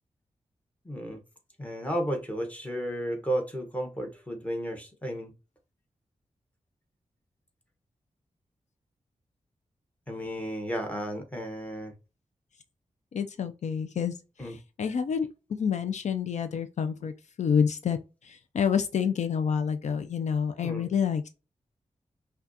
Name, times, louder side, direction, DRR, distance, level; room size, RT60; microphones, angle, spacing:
voice 1, 0.8-1.2 1.6-5.3 10.1-11.9 14.4-14.6 20.6-20.9, equal, 10° left, 1.2 m, -33 dB
voice 2, 13.1-17.1 17.4-21.3, left 7 dB, 70° left, 0.5 m, -28 dB
5.7 x 2.4 x 2.7 m
wide cardioid pair, 95°, 12 cm